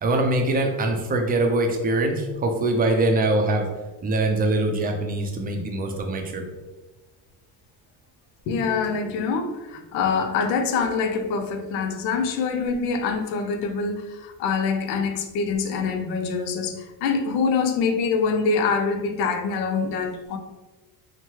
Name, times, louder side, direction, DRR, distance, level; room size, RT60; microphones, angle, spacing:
voice 1, 0.0-3.7 4.0-6.4, right 2 dB, 20° right, 3 dB, 0.4 m, -23 dB
voice 2, 8.5-20.4, left 5 dB, 90° left, 6 dB, 0.6 m, -25 dB
2.9 x 2.2 x 3.1 m, 1.2 s
cardioid pair, 105°, 43 cm